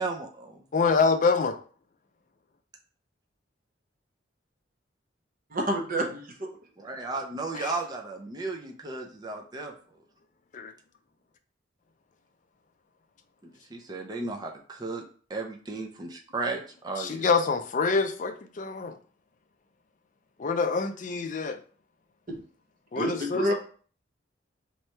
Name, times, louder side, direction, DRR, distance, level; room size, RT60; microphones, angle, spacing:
voice 1, 0.0-1.0 6.8-9.7 13.7-15.0 15.3-17.3, right 3 dB, 20° right, 2 dB, 0.4 m, -35 dB
voice 2, 0.7-1.6 7.5-7.7 10.5-10.7 17.0-18.9 20.4-21.6 22.9-23.5, left 4 dB, 40° left, 8 dB, 0.4 m, -26 dB
voice 3, 5.5-6.5 22.3-22.4 23.0-23.5, equal, 45° right, 2 dB, 0.8 m, -28 dB
3.2 x 2.9 x 4.4 m, 0.43 s
head